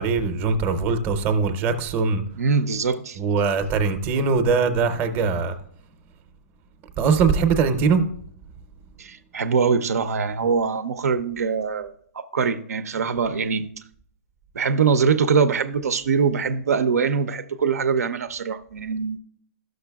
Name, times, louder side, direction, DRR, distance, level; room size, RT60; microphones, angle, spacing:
voice 1, 0.0-2.2 3.2-5.5 7.0-8.0, right 5 dB, 25° right, 0.6 m, -21 dB
voice 2, 2.4-3.2 9.0-13.7 14.5-19.2, right 5 dB, 85° right, 0.5 m, -23 dB
12.0 x 6.5 x 2.3 m
hypercardioid pair, 145°, 8 cm